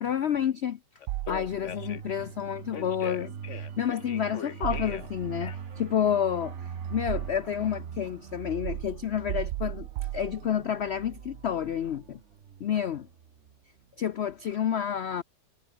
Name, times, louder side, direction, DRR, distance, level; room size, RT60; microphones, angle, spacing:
voice 1, 0.0-0.8 1.3-9.9 10.1-12.2 12.6-13.1 14.0-15.2, left 9 dB, 75° left, 0.6 m, -29 dB
Telephone, 1.0-2.1 2.7-5.1 5.4-5.8, left 7 dB, 45° left, 1.3 m, -40 dB
sound 1, 1.1-2.0 4.6-5.5 6.4-7.7 8.6-10.9, right 16 dB, 80° right, 1.2 m, -36 dB
sound 2, 1.5-13.8 14.1-14.3, right 7 dB, 45° right, 1.2 m, -42 dB
omnidirectional pair, 1.9 m